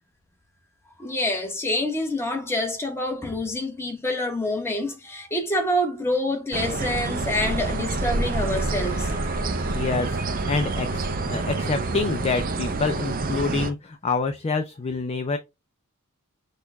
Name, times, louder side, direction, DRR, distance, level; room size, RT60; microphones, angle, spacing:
voice 1, 1.0-9.1, left 1 dB, 10° left, 1.1 m, -27 dB
sound 1, 6.5-13.7, right 3 dB, 40° right, 0.5 m, -27 dB
sound 2, 8.4-12.8, left 3 dB, 60° left, 1.4 m, -43 dB
voice 2, 9.7-15.4, left 4 dB, 30° left, 0.3 m, -27 dB
6.4 x 2.3 x 3.4 m
head